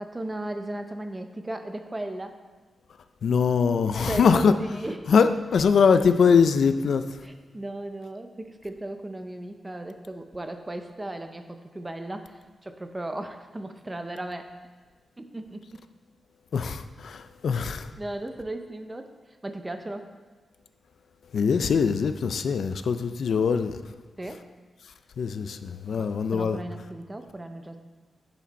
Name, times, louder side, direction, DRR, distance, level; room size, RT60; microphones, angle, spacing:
voice 1, 0.0-2.4 3.9-5.1 7.2-14.5 15.2-15.8 17.6-17.7 18.0-19.1 19.4-20.1 22.9-23.0 24.2-24.5 26.0-27.8, right 1 dB, 15° right, 0.5 m, -36 dB
voice 2, 3.2-4.5 5.1-7.1 16.5-17.9 21.3-23.8 25.2-26.6, left 6 dB, 60° left, 0.3 m, -22 dB
10.5 x 5.1 x 4.0 m
wide cardioid pair, 170°, 0 cm